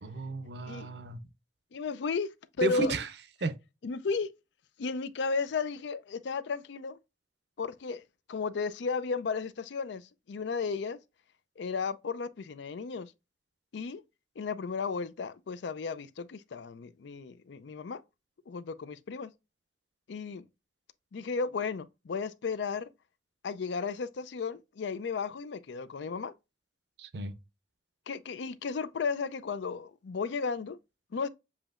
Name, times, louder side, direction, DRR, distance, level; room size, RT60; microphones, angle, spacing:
voice 1, 0.0-1.2 2.6-3.1 3.4-3.6 27.0-27.3, right 3 dB, 60° right, 0.6 m, -33 dB
voice 2, 1.7-2.3 2.6-2.9 3.8-4.3 4.8-7.0 7.6-8.0 8.3-11.0 11.6-13.1 13.7-14.0 14.4-18.0 18.5-19.3 20.1-20.4 21.1-22.9 23.4-26.3 28.1-30.8 31.1-31.3, left 5 dB, 70° left, 0.4 m, -34 dB
7.2 x 2.9 x 2.4 m
head